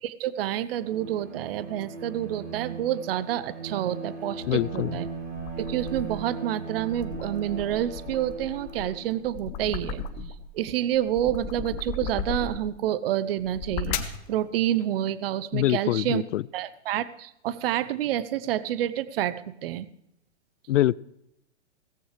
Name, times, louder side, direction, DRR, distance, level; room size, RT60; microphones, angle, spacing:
voice 1, 0.0-5.1 5.6-10.0 10.5-16.2 16.5-19.9, right 12 dB, 55° right, 17 dB, 0.7 m, -28 dB
Bowed string instrument, 0.8-9.3, right 4 dB, 85° right, 7.0 m, -38 dB
sound 1, 4.4-6.3 6.8-10.5 10.9-12.8 13.4-14.2, left 6 dB, 25° left, 0.8 m, -36 dB
voice 2, 4.5-4.9 15.5-16.4 20.7-21.0, left 14 dB, 85° left, 23 dB, 0.5 m, -24 dB
17.0 x 15.0 x 3.3 m, 0.79 s
hypercardioid pair, 150°, 36 cm